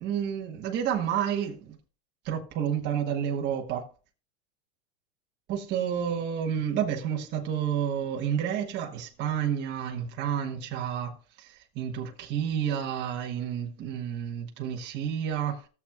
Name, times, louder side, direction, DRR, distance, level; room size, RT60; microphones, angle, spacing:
voice 1, 0.0-1.8 2.2-3.8 5.5-15.7, right 9 dB, 30° right, 1.3 m, -30 dB
16.0 x 7.2 x 2.4 m
supercardioid pair, 155°, 34 cm